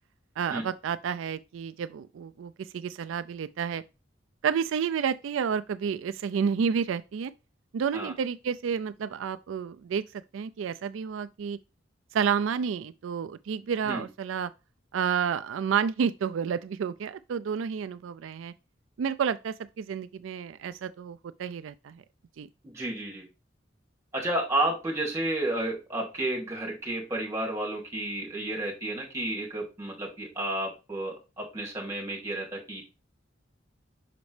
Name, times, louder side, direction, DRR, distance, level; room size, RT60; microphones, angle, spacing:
voice 1, 0.4-3.8 4.4-7.3 7.7-10.0 10.3-11.6 12.1-14.5 14.9-18.5 19.0-22.0 22.4-22.5, right 7 dB, 85° right, 0.4 m, -30 dB
voice 2, 22.7-23.2 24.1-32.8, right 1 dB, 15° right, 2.5 m, -31 dB
5.9 x 5.2 x 3.2 m
head